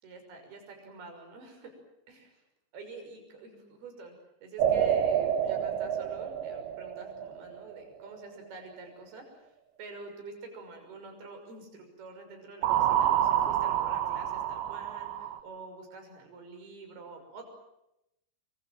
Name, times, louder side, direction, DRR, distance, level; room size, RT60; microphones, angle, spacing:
voice 1, 0.0-1.7 2.1-2.4 2.7-4.2 4.4-9.5 9.8-17.5, right 3 dB, 60° right, 5 dB, 7.9 m, -47 dB
sound 1, 4.6-7.8 12.6-15.4, right 10 dB, 80° right, 3.5 m, -28 dB
27.0 x 24.5 x 7.8 m, 0.85 s
omnidirectional pair, 5.1 m